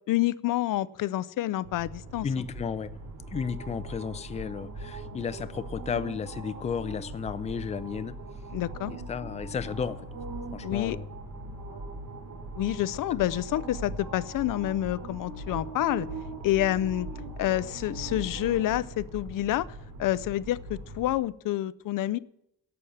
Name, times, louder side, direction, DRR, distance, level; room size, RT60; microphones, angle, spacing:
voice 1, 0.1-2.3 8.5-8.9 10.6-11.0 12.6-16.1 16.4-17.1 17.4-19.7 20.0-22.2, left 14 dB, 75° left, 18 dB, 0.5 m, -28 dB
sound 1, 1.6-21.2, right 2 dB, 75° right, 3.4 m, -40 dB
voice 2, 2.2-2.9 3.3-8.2 8.9-10.1 10.5-11.1 13.1-13.3, left 6 dB, 20° left, 12 dB, 0.5 m, -33 dB
11.5 x 7.0 x 8.5 m, 0.76 s
wide cardioid pair, 165°, 33 cm